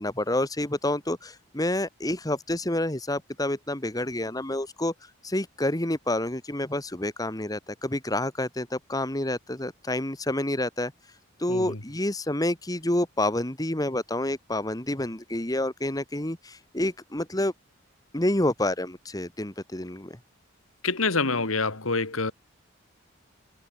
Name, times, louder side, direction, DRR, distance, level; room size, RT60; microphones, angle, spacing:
voice 1, 0.0-4.9 5.2-10.9 11.4-17.5 18.1-20.2, left 1 dB, 20° left, 1.7 m, -28 dB
voice 2, 11.5-11.8 20.8-22.3, left 3 dB, 90° left, 2.9 m, -26 dB
head